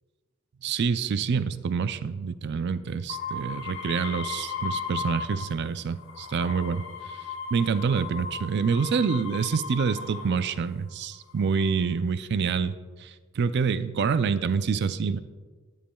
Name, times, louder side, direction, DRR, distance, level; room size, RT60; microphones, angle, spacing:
voice 1, 0.6-6.8 7.5-12.7 13.0-13.1 13.4-15.2, right 5 dB, 55° right, 13 dB, 0.4 m, -27 dB
sound 1, 3.1-5.6 6.0-10.5 11.3-11.9, left 5 dB, 70° left, 1.2 m, -36 dB
12.5 x 10.5 x 2.3 m, 1.4 s
head